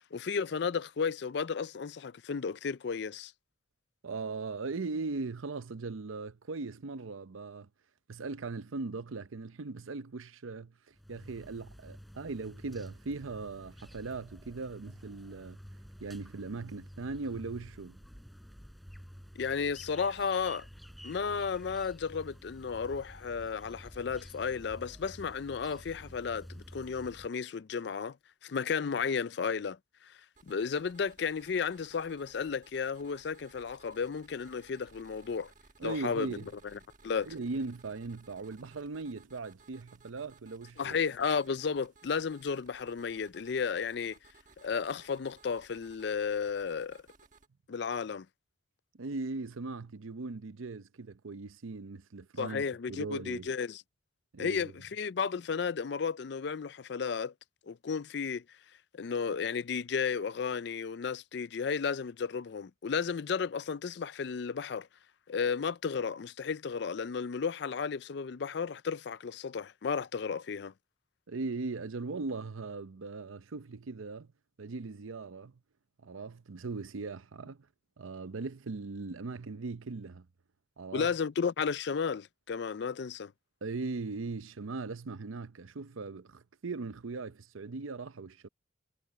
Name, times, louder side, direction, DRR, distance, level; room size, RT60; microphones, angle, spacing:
voice 1, 0.1-3.3 19.4-20.6 21.0-28.2 28.4-29.8 30.0-30.1 30.5-35.5 35.8-36.3 36.7-37.3 40.8-44.2 44.6-47.0 47.7-48.3 52.4-53.8 54.4-57.3 57.7-58.4 58.9-64.9 65.3-70.7 80.9-83.3, left 6 dB, 55° left, 0.4 m, -33 dB
voice 2, 4.0-7.7 8.1-10.7 11.1-15.6 16.0-18.0 35.8-36.5 37.2-41.0 49.0-52.6 52.9-53.5 54.3-54.7 71.3-74.3 74.6-75.5 76.0-77.7 78.0-80.3 80.8-81.1 83.6-88.5, right 3 dB, 85° right, 0.7 m, -39 dB
sound 1, 10.9-27.3, equal, ahead, 4.5 m, -51 dB
sound 2, 30.4-47.5, right 4 dB, 40° right, 1.4 m, -61 dB
head